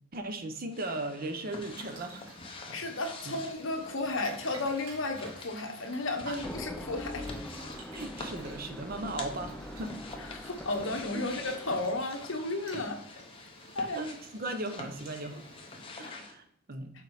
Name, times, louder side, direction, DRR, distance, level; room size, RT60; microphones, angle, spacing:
voice 1, 0.1-2.3 6.3-6.4 7.9-10.0 14.0-15.4 15.9-16.9, right 2 dB, 40° right, 7 dB, 0.7 m, -37 dB
sound 1, 0.7-16.3, left 3 dB, 25° left, 0.9 m, -47 dB
Boiling, 1.4-16.0, right 2 dB, 85° right, 1.9 m, -53 dB
voice 2, 2.7-7.3 10.2-13.0 13.7-14.1, left 2 dB, 60° left, 4 dB, 1.1 m, -33 dB
sound 2, 6.3-12.0, left 1 dB, 5° left, 0.3 m, -43 dB
6.8 x 4.6 x 4.8 m, 0.69 s
head